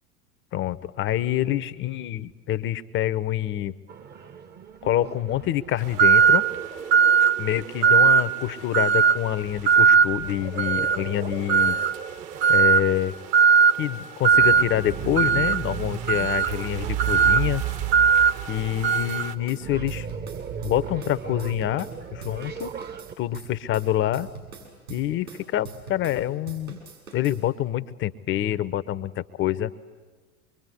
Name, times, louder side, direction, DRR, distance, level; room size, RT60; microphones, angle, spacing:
voice 1, 0.5-3.7 4.8-6.4 7.4-11.8 12.5-13.1 13.8-17.6 18.5-20.1 20.6-22.7 23.2-24.3 24.9-26.8 27.1-29.7, left 12 dB, 25° left, 15 dB, 0.8 m, -26 dB
sound 1, 3.9-23.1, right 9 dB, 25° right, 1.0 m, -36 dB
sound 2, 6.0-6.5 6.9-7.4 7.8-8.3 8.7-9.2 9.7-10.1 10.6-11.0 11.5-12.0 12.4-12.9 13.3-13.8 14.2-14.6 15.2-19.3, right 7 dB, 40° right, 1.2 m, -18 dB
sound 3, 19.1-22.0 22.2-26.2 26.5-27.4, right 5 dB, 75° right, 6.9 m, -42 dB
25.0 x 22.0 x 9.9 m, 1.4 s
figure-of-eight pair, 85°, 44 cm